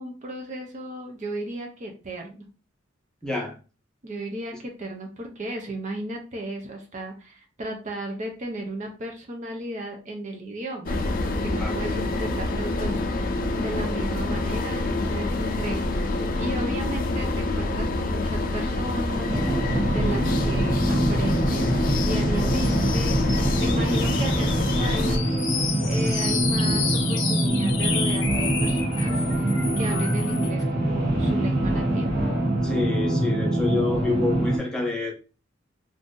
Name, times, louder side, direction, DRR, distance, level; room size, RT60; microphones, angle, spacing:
voice 1, 0.0-2.4 4.0-11.0 11.2-13.3 13.6-16.0 16.4-25.4 25.8-29.5 29.8-32.1, right 1 dB, 40° right, 3 dB, 0.5 m, -35 dB
voice 2, 3.2-3.5 11.6-11.8 23.6-23.8 32.6-35.1, left 3 dB, 5° left, -1 dB, 0.7 m, -28 dB
sound 1, 10.9-25.2, left 2 dB, 45° left, 0.5 m, -26 dB
sound 2, 19.3-34.6, right 1 dB, 55° right, 1.0 m, -24 dB
sound 3, 22.6-30.6, left 5 dB, 70° left, 0.8 m, -31 dB
2.6 x 2.5 x 3.6 m, 0.34 s
head